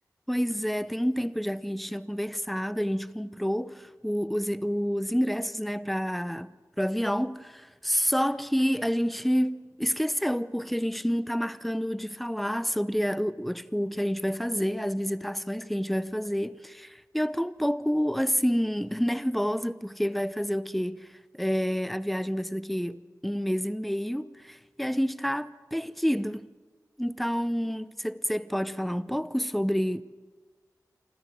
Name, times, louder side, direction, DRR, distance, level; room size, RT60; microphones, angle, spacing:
voice 1, 0.3-6.5 6.8-21.1 21.3-26.5 27.0-30.0, equal, ahead, 0.7 m, -28 dB
25.5 x 14.0 x 7.6 m
cardioid pair, 45°, 7 cm